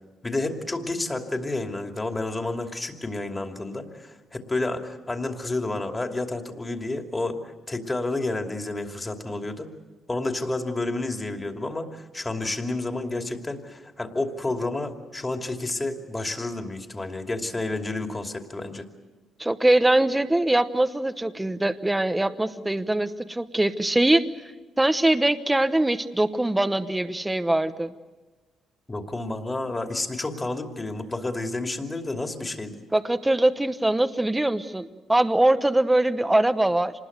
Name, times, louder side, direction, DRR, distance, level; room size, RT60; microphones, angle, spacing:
voice 1, 0.2-9.7 10.1-18.9 28.9-32.8, left 2 dB, 20° left, 4 dB, 2.8 m, -30 dB
voice 2, 19.4-24.2 24.8-27.9 32.9-36.9, right 1 dB, 10° right, 9 dB, 1.0 m, -22 dB
26.0 x 20.5 x 8.1 m, 1.2 s
cardioid pair, 90°, 0 cm